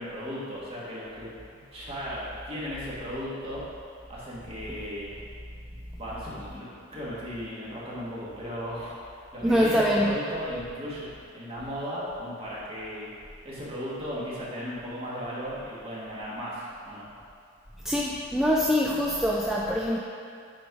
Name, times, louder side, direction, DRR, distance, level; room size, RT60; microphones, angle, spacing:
voice 1, 0.0-3.6 4.1-5.1 6.0-13.1 13.4-17.1, equal, 30° right, -8 dB, 1.8 m, -36 dB
voice 2, 9.4-10.1 17.8-20.0, equal, ahead, -4 dB, 0.4 m, -24 dB
8.6 x 3.9 x 4.7 m, 2.5 s
head